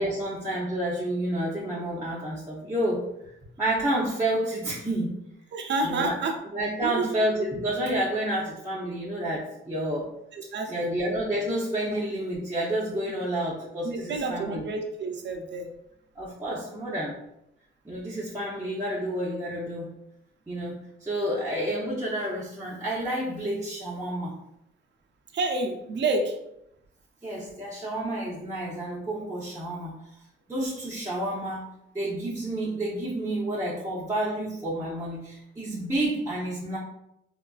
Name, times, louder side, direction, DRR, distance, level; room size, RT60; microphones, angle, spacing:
voice 1, 0.0-3.0 3.6-5.1 5.8-6.1 6.5-10.1 10.7-14.6 16.2-17.2 17.8-19.9 20.5-24.3 27.2-29.9 30.5-31.7 31.9-36.8, right 1 dB, 15° right, -7 dB, 0.7 m, -29 dB
voice 2, 5.5-6.4 6.8-7.2 10.3-11.0 11.9-12.0 13.8-15.7 25.3-26.4, right 3 dB, 60° right, 4 dB, 0.6 m, -29 dB
3.6 x 2.4 x 2.3 m, 0.80 s
cardioid pair, 95°, 21 cm